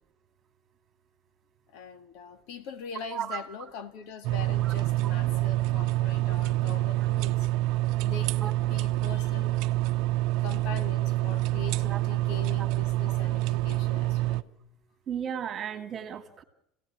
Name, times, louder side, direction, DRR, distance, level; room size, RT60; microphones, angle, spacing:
voice 1, 1.7-7.5 8.0-9.6 10.4-14.5, left 5 dB, 65° left, 2.1 m, -42 dB
sound 1, 4.2-14.4, right 17 dB, 60° right, 0.8 m, -27 dB
voice 2, 15.1-16.4, right 8 dB, 30° right, 2.5 m, -35 dB
27.5 x 17.5 x 9.0 m
cardioid pair, 160°, 0 cm